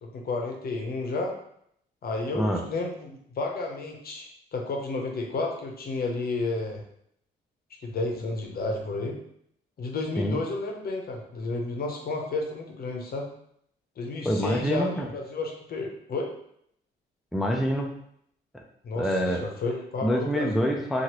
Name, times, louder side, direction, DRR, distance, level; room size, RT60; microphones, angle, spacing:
voice 1, 0.0-1.3 2.0-6.8 7.8-9.2 9.8-13.3 14.0-16.3 18.8-20.7, left 3 dB, 50° left, 1 dB, 0.7 m, -32 dB
voice 2, 14.3-15.1 17.3-17.9 19.0-19.4 20.0-21.0, equal, ahead, 1 dB, 0.3 m, -26 dB
3.0 x 2.4 x 2.9 m, 0.71 s
cardioid pair, 90°, 20 cm